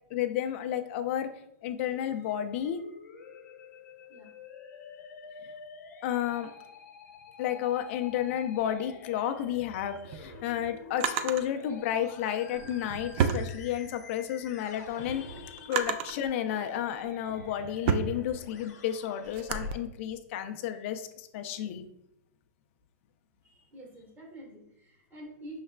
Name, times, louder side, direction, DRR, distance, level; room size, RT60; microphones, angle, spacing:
voice 1, 0.1-1.3 1.6-2.8 6.0-6.5 7.4-21.9, left 10 dB, 45° left, 8 dB, 0.4 m, -32 dB
Musical instrument, 1.8-19.8, left 5 dB, 75° left, 0.9 m, -49 dB
Drawer open or close, 9.8-11.5 12.5-14.1 14.6-16.3 16.9-19.7, right 7 dB, 45° right, 0.4 m, -32 dB
voice 2, 23.4-25.6, right 1 dB, 20° right, -1 dB, 1.3 m, -47 dB
5.5 x 3.2 x 2.2 m, 0.81 s
hypercardioid pair, 140°, 9 cm